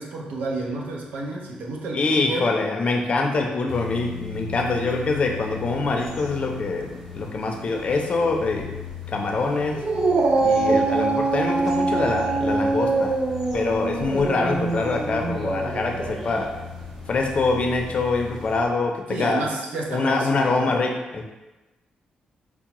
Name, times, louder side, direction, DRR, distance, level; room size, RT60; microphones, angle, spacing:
voice 1, 0.0-2.5 19.1-20.8, right 2 dB, 80° right, -1 dB, 0.6 m, -31 dB
voice 2, 1.9-8.8 9.1-9.8 10.4-13.1 13.5-16.5 17.1-19.4 19.9-21.2, left 3 dB, 45° left, 2 dB, 0.5 m, -24 dB
sound 1, 3.7-18.6, left 5 dB, 10° right, 0.8 m, -38 dB
Dog, 9.8-16.4, right 3 dB, 40° right, 0.4 m, -24 dB
4.5 x 2.0 x 2.9 m, 1.1 s
cardioid pair, 100°, 3 cm